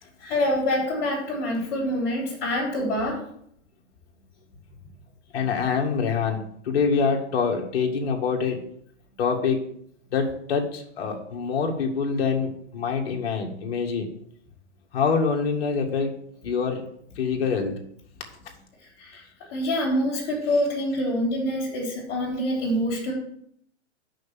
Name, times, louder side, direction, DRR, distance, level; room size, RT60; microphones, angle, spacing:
voice 1, 0.2-3.2 19.0-19.2 19.5-23.1, left 1 dB, 30° left, -4 dB, 3.4 m, -26 dB
voice 2, 5.3-8.6 9.2-9.6 10.1-14.1 14.9-16.2 16.4-16.8 17.2-17.7, left 5 dB, 55° left, 1 dB, 2.0 m, -25 dB
6.4 x 5.8 x 7.0 m, 0.68 s
hypercardioid pair, 170°, 36 cm